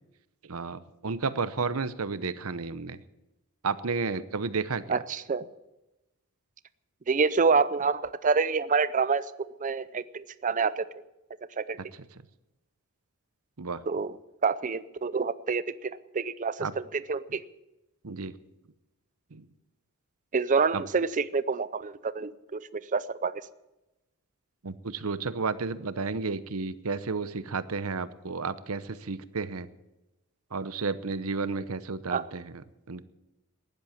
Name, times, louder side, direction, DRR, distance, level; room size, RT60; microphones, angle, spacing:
voice 1, 0.5-3.0 3.6-5.0 13.6-13.8 16.6-16.7 18.0-18.3 19.3-19.4 20.7-20.8 24.6-29.7 30.5-33.0, right 4 dB, 70° right, 14 dB, 0.8 m, -32 dB
voice 2, 4.9-5.4 7.1-9.2 9.6-10.8 11.6-11.8 13.9-14.2 14.4-16.8 17.1-17.4 20.3-23.3 32.1-32.2, right 5 dB, 35° right, 15 dB, 0.5 m, -27 dB
15.5 x 11.0 x 7.3 m, 0.96 s
head